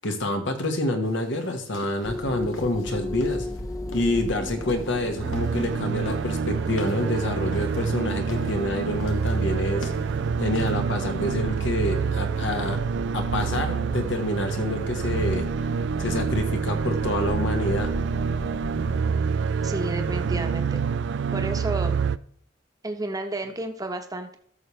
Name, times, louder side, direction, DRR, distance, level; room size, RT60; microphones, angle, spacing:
voice 1, 0.0-3.5 3.9-9.9 10.4-12.8 13.1-15.5 16.0-17.9, left 1 dB, 65° left, 6 dB, 1.4 m, -27 dB
sound 1, 1.0-10.7, left 2 dB, 85° left, 1.6 m, -43 dB
sound 2, 2.0-19.1, left 1 dB, 15° left, 0.7 m, -36 dB
sound 3, 5.2-22.2, right 6 dB, 65° right, 0.3 m, -27 dB
voice 2, 19.6-20.8 21.3-22.0 22.8-24.4, right 2 dB, 20° right, 5 dB, 1.0 m, -31 dB
13.5 x 6.9 x 3.2 m, 0.62 s
head